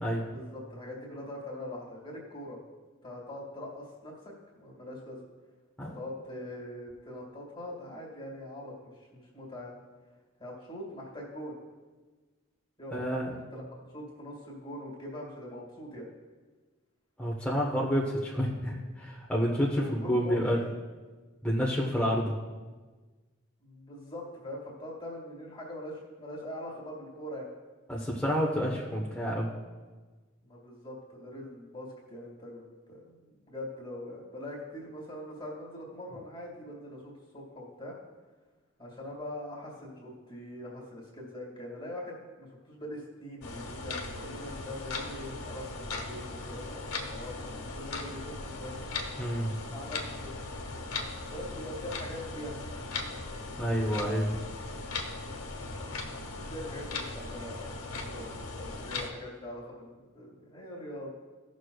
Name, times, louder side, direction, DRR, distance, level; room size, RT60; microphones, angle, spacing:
voice 1, 0.0-2.6 3.0-5.2 5.8-9.7 10.4-11.6 12.8-13.0 13.3-16.1 19.7-20.7 23.6-27.5 30.4-37.9 38.8-48.8 49.7-50.3 51.3-52.9 56.3-61.1, left 1 dB, 25° left, -4 dB, 1.9 m, -42 dB
voice 2, 12.9-13.3 17.2-20.6 21.4-22.3 27.9-29.5 49.2-49.5 53.6-54.4, equal, 5° left, -5 dB, 1.0 m, -29 dB
sound 1, 43.4-59.1, left 3 dB, 90° left, 1.2 m, -38 dB
16.5 x 6.4 x 2.3 m, 1.3 s
head